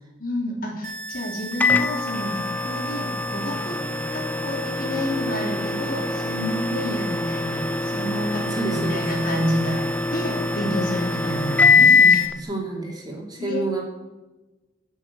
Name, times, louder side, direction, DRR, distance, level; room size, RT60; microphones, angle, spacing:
voice 1, 0.2-3.8 4.1-9.8 10.1-12.4 13.4-13.6, equal, 50° left, 0 dB, 3.3 m, -29 dB
sound 1, 0.8-12.3, right 2 dB, 45° right, 1.7 m, -36 dB
Microwave oven, 1.6-12.4, left 5 dB, 10° left, 0.5 m, -23 dB
voice 2, 8.5-9.1 12.4-13.9, right 3 dB, 20° right, -1 dB, 2.9 m, -29 dB
13.0 x 6.4 x 8.5 m, 1.1 s
head